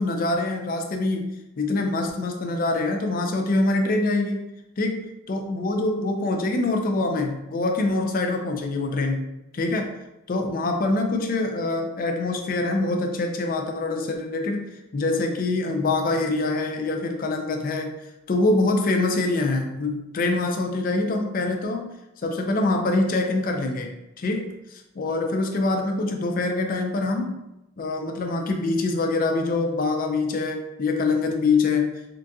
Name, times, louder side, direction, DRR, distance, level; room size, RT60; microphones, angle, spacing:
voice 1, 0.0-4.5 4.8-9.3 9.5-9.9 10.3-14.6 14.9-18.0 18.3-21.9 22.2-27.4 27.8-32.2, left 2 dB, 40° left, 3 dB, 0.4 m, -25 dB
3.8 x 2.5 x 2.2 m, 0.93 s
head